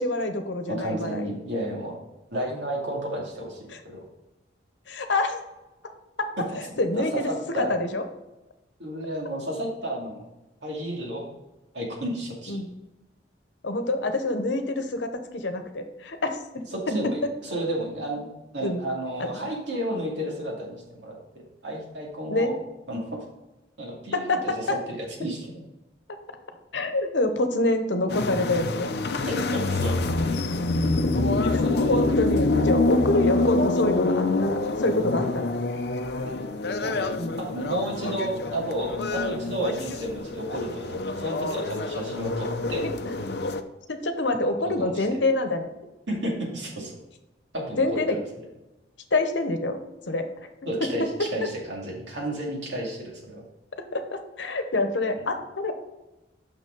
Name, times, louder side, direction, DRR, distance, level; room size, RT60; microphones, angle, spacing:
voice 1, 0.0-1.3 3.7-3.8 4.9-5.4 6.2-6.3 6.5-8.0 12.5-12.7 13.6-17.2 18.6-18.8 19.2-19.3 22.3-22.5 24.1-24.8 26.7-28.9 31.5-31.6 31.9-35.5 37.2-37.4 43.0-43.1 43.9-45.7 47.8-48.2 49.1-49.8 50.1-50.3 50.8-50.9 51.2-51.5 53.9-55.7, left 2 dB, 85° left, 7 dB, 0.9 m, -26 dB
voice 2, 0.7-2.0 2.3-4.0 6.9-7.8 8.8-10.3 10.6-11.3 11.7-12.6 16.7-22.6 22.9-23.2 23.8-25.5 29.2-29.9 31.6-32.0 36.8-42.8 44.6-45.0 46.1-47.0 47.5-48.0 50.6-53.4, right 1 dB, 75° right, -2 dB, 2.3 m, -32 dB
sound 1, 28.1-43.6, left 2 dB, 60° left, 0.6 m, -26 dB
6.5 x 6.1 x 3.8 m, 1.0 s
head